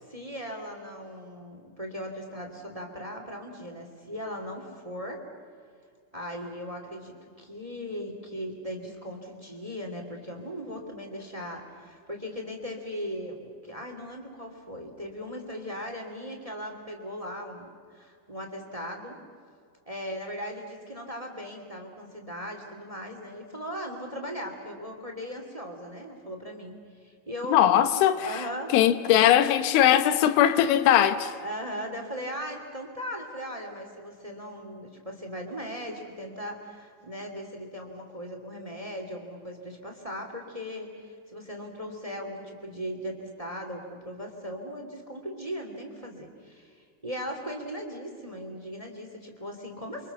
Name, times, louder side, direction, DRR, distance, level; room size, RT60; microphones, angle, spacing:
voice 1, 0.1-5.2 6.1-19.2 19.8-27.6 28.2-28.7 31.4-50.1, equal, 10° right, 1.6 m, -38 dB
voice 2, 27.5-28.4 28.7-31.4, left 11 dB, 85° left, 3.5 m, -20 dB
28.5 x 26.0 x 7.0 m
omnidirectional pair, 5.4 m